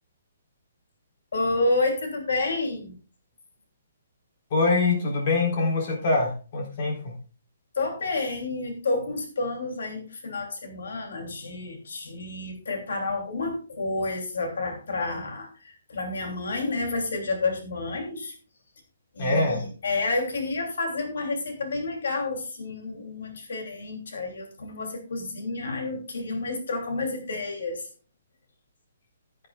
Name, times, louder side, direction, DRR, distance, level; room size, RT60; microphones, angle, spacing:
voice 1, 1.3-2.9 7.7-18.3 19.1-27.9, left 3 dB, 75° left, 3 dB, 3.0 m, -30 dB
voice 2, 4.5-7.1 19.2-19.7, left 3 dB, 30° left, 0 dB, 3.9 m, -24 dB
13.0 x 11.0 x 2.4 m, 0.37 s
hypercardioid pair, 175°, 0 cm